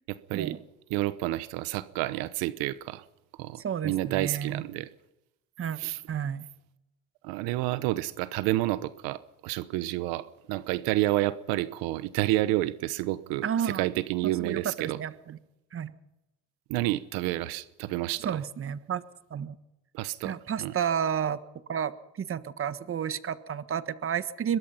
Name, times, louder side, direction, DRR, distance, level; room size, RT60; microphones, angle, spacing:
voice 1, 0.1-0.6 0.9-3.0 3.4-4.9 5.8-6.0 7.2-15.0 16.7-18.4 19.9-20.7, right 17 dB, 80° right, 15 dB, 1.0 m, -30 dB
voice 2, 3.5-4.6 5.6-5.8 6.1-6.5 13.4-13.8 14.2-15.4 15.7-15.9 18.2-19.0 19.3-19.6 20.2-21.4 21.7-21.9 22.2-24.6, right 8 dB, 35° right, 13 dB, 1.6 m, -31 dB
22.5 x 22.0 x 5.7 m, 0.92 s
supercardioid pair, 90°, 35 cm